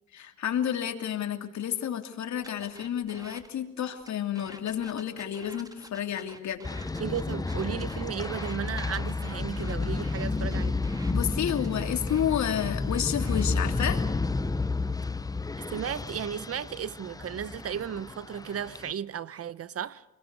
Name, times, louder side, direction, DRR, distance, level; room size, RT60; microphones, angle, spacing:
voice 1, 0.1-6.7 11.1-14.0, left 9 dB, 65° left, 3.0 m, -30 dB
sound 1, 2.4-3.5 4.0-8.6 8.9-11.1 11.4-13.5 14.0-14.3, right 1 dB, 10° right, 2.6 m, -49 dB
sound 2, 6.6-18.9, left 3 dB, 10° left, 0.9 m, -31 dB
voice 2, 7.0-10.8 15.7-20.0, right 8 dB, 50° right, 1.0 m, -34 dB
28.0 x 21.0 x 8.3 m
cardioid pair, 90°, 30 cm